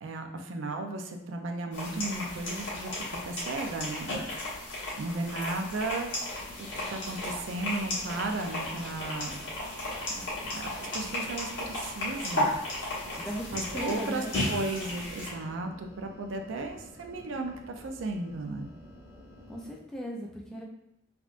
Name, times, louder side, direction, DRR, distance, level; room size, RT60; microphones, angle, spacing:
voice 1, 0.0-4.1 5.0-6.1 6.6-9.4 10.2-10.3 10.5-12.6 13.5-18.7, right 2 dB, 70° right, 4 dB, 0.4 m, -35 dB
sound 1, 1.7-15.3, left 1 dB, 70° left, 1.2 m, -34 dB
sound 2, 6.3-19.8, equal, 50° left, 1.0 m, -51 dB
voice 2, 13.7-14.3 19.5-20.6, equal, 5° left, -2 dB, 0.3 m, -37 dB
3.5 x 2.3 x 2.4 m, 0.82 s
head